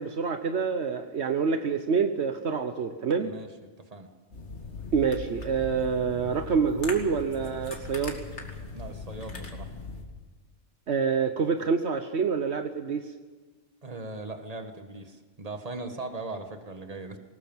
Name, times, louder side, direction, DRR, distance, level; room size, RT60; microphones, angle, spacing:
voice 1, 0.0-3.3 4.9-8.2 10.9-13.1, right 5 dB, 65° right, 7 dB, 1.3 m, -27 dB
voice 2, 3.8-4.1 8.7-9.7 13.8-17.2, right 2 dB, 30° right, 6 dB, 1.7 m, -39 dB
sound 1, 4.3-10.0, left 3 dB, 70° left, 2.7 m, -39 dB
21.5 x 19.0 x 7.3 m, 1.4 s
omnidirectional pair, 1.2 m